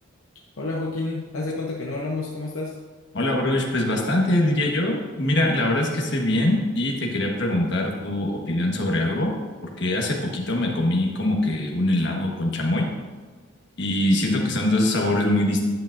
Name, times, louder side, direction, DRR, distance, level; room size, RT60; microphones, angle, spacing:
voice 1, 0.6-2.8, left 2 dB, 70° left, -3 dB, 0.9 m, -29 dB
voice 2, 3.1-9.3 9.8-12.9 13.8-15.6, left 1 dB, 50° left, 0 dB, 1.4 m, -23 dB
10.0 x 8.4 x 2.6 m, 1.5 s
head